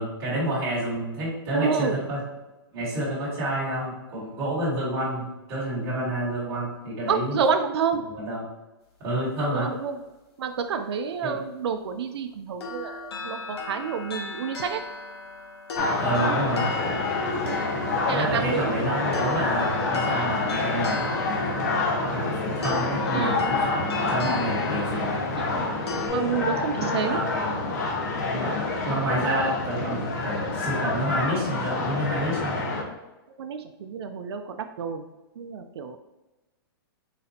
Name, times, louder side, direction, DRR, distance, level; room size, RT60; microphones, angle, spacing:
voice 1, 0.0-2.2 2.7-7.4 8.1-8.5 9.0-9.7 11.2-11.4 16.0-16.7 18.1-21.7 22.1-25.2 27.1-27.5 28.2-28.6 28.8-32.6, right 1 dB, 20° right, -6 dB, 1.4 m, -29 dB
voice 2, 1.5-2.0 7.1-8.0 9.5-10.0 10.4-14.8 18.1-18.9 23.1-23.5 25.4-25.7 26.1-27.2 33.4-35.0 35.4-36.0, right 6 dB, 90° right, 7 dB, 0.4 m, -29 dB
sound 1, 12.6-26.1, left 3 dB, 85° left, 1.0 m, -36 dB
sound 2, 15.7-32.8, left 3 dB, 45° left, 0.8 m, -27 dB
4.1 x 4.0 x 2.7 m, 1.1 s
hypercardioid pair, 175°, 13 cm